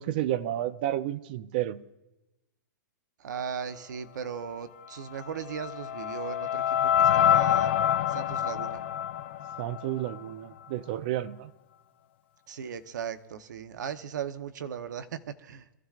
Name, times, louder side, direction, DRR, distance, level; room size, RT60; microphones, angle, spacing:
voice 1, 0.0-1.8 9.6-11.5, right 13 dB, 30° right, 0.5 m, -31 dB
voice 2, 3.2-7.7 8.1-8.8 12.5-15.6, right 7 dB, 70° right, 1.0 m, -37 dB
sound 1, 5.1-10.3, left 10 dB, 35° left, 0.6 m, -26 dB
26.0 x 14.5 x 2.5 m
hypercardioid pair, 175°, 10 cm